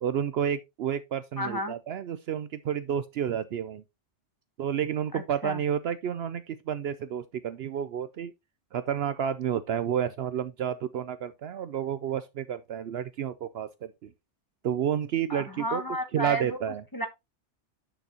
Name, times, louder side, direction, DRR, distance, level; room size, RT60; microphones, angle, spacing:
voice 1, 0.0-3.8 4.6-8.3 8.7-14.1 14.6-15.8 16.1-16.8, right 9 dB, 65° right, 0.7 m, -30 dB
voice 2, 1.4-1.8 5.1-5.6 15.3-16.6 16.9-17.1, right 1 dB, 20° left, 1.1 m, -32 dB
9.3 x 6.1 x 2.9 m
omnidirectional pair, 1.2 m